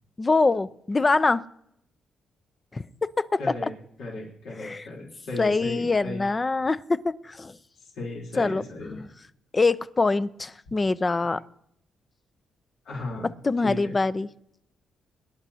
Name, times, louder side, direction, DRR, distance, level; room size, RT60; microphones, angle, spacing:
voice 1, 0.2-1.4 2.7-3.4 4.6-4.9 5.4-7.6 8.4-8.6 8.9-9.1 9.5-11.4 13.4-14.3, left 3 dB, 25° left, 15 dB, 0.5 m, -24 dB
voice 2, 3.4-3.7 4.0-6.2 7.8-9.0 10.7-10.8 12.9-13.3 13.6-13.9, left 2 dB, 85° left, -3 dB, 3.6 m, -35 dB
24.0 x 11.0 x 2.8 m, 0.74 s
cardioid pair, 100°, 0 cm